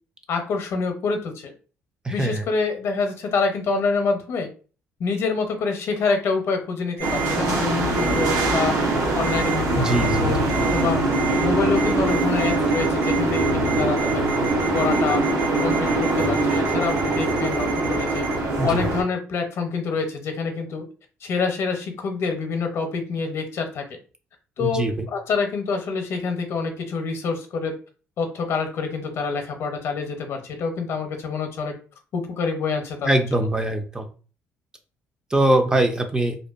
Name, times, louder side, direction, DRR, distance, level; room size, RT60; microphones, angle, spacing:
voice 1, 0.3-1.5 2.1-4.5 5.0-8.8 9.1-11.0 11.4-14.3 14.7-15.2 15.6-18.3 18.6-20.8 21.2-23.8 24.6-24.8 25.1-27.8 28.2-31.7 32.1-33.1, left 4 dB, 60° left, 5 dB, 0.6 m, -26 dB
voice 2, 2.0-2.5 9.7-10.5 18.6-18.8 24.6-25.1 33.0-34.1 35.3-36.4, right 1 dB, 15° right, 5 dB, 0.3 m, -22 dB
Ringtone, 7.0-7.3 8.0-8.6 9.2-9.6 9.9-10.2 10.5-10.8 11.1-11.4 11.7-18.4, right 10 dB, 55° right, 1.4 m, -32 dB
sound 1, 7.0-19.0, right 2 dB, 75° right, 0.7 m, -22 dB
2.5 x 2.1 x 2.4 m, 0.37 s
cardioid pair, 125°, 5 cm